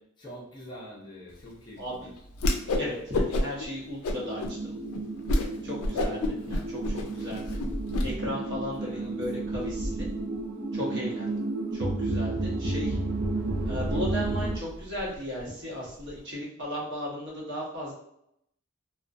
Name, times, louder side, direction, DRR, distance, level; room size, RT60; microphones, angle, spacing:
voice 1, 0.2-2.1 8.2-9.6 10.7-11.0, equal, 20° left, -4 dB, 0.5 m, -46 dB
voice 2, 1.8-2.1 2.5-4.8 5.6-7.5 8.0-10.1 10.7-11.4 11.7-13.0 13.6-17.9, left 1 dB, 50° right, -5 dB, 0.9 m, -36 dB
Whoosh swoosh swish, 2.4-2.9 3.1-3.7 4.0-4.5 4.9-5.0 5.3-5.5 5.8-8.0, left 1 dB, 80° left, 0.4 m, -27 dB
sound 1, 4.1-14.6, right 2 dB, 75° right, 0.4 m, -32 dB
Wind, 6.4-16.2, equal, 20° right, 0.6 m, -41 dB
2.4 x 2.2 x 2.5 m, 0.77 s
head